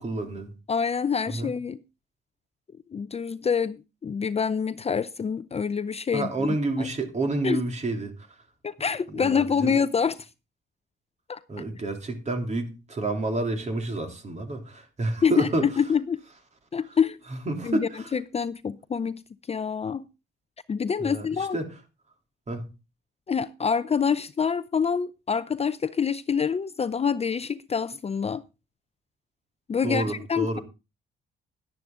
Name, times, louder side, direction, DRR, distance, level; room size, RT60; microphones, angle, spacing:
voice 1, 0.0-0.5 1.3-1.5 6.1-8.1 9.1-9.7 11.5-15.6 17.3-18.1 21.0-21.7 22.5-22.7 29.8-30.6, right 2 dB, 35° right, 3.2 m, -29 dB
voice 2, 0.7-1.8 2.9-6.9 7.4-7.6 8.6-10.3 11.3-11.4 15.2-16.2 16.7-17.2 17.6-19.2 19.5-20.1 20.7-21.6 23.3-28.4 29.7-30.6, left 6 dB, 30° left, 0.6 m, -26 dB
11.5 x 10.5 x 3.7 m
cardioid pair, 90°, 20 cm